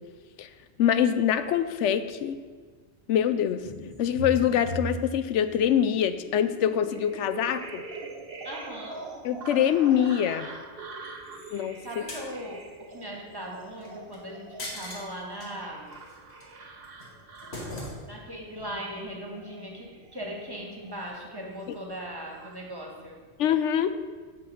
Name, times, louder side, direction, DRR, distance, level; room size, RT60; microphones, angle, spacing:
voice 1, 0.8-2.4 3.1-3.6 4.0-7.8 9.2-10.5 11.5-12.0 23.4-24.0, left 9 dB, 80° left, 12 dB, 0.9 m, -24 dB
sound 1, 3.6-21.4 21.7-22.6, right 2 dB, 55° right, 1.3 m, -42 dB
voice 2, 8.4-9.1 11.5-15.9 18.1-23.2, equal, 20° right, -1 dB, 1.9 m, -39 dB
sound 2, 11.0-12.3 13.8-14.2 14.6-15.5 15.9-16.4 16.8-18.3 18.6-18.7, left 1 dB, 65° left, 2.3 m, -41 dB
8.8 x 7.7 x 6.2 m, 1.4 s
omnidirectional pair, 1.2 m